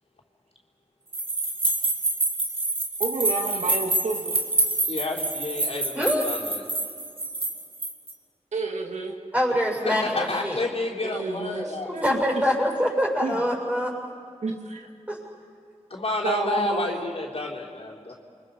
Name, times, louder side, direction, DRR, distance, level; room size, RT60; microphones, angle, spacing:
sound 1, 1.1-8.1, right 2 dB, 50° right, 2.7 m, -27 dB
voice 1, 3.0-4.4 8.5-9.1 11.0-12.2 13.2-13.4 14.4-14.9 16.2-17.0, right 3 dB, 85° right, 2 dB, 2.2 m, -30 dB
voice 2, 4.8-6.6 9.8-12.0 15.9-18.1, left 3 dB, 60° left, -2 dB, 3.7 m, -30 dB
voice 3, 5.9-6.3 9.3-10.6 11.9-13.9 15.1-15.2, equal, 10° right, -1 dB, 6.9 m, -24 dB
29.5 x 24.0 x 5.4 m, 2.3 s
wide cardioid pair, 70°, 12 cm